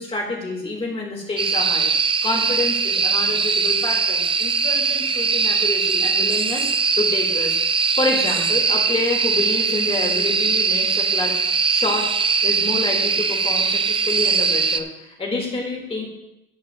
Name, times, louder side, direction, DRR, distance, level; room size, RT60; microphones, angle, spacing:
voice 1, 0.0-1.9 2.2-6.7 6.9-7.6 8.0-11.3 11.7-12.1 12.4-16.1, left 2 dB, 30° left, -2 dB, 4.1 m, -27 dB
sound 1, 1.4-14.8, right 5 dB, 25° right, 0.6 m, -21 dB
13.5 x 9.1 x 3.1 m, 0.90 s
cardioid pair, 90°, 20 cm